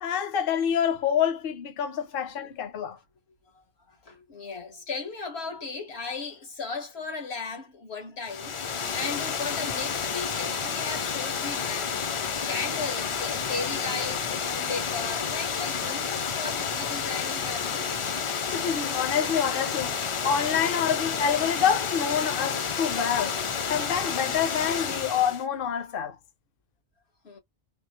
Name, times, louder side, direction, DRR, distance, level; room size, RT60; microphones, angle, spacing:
voice 1, 0.0-3.0 18.5-19.9 20.2-23.4 23.7-26.2, left 8 dB, 65° left, 0.8 m, -27 dB
voice 2, 3.5-17.9 27.2-27.4, left 4 dB, 90° left, 1.7 m, -36 dB
Water, 8.2-25.4, left 6 dB, 45° left, 0.4 m, -30 dB
3.6 x 3.0 x 2.9 m
omnidirectional pair, 1.1 m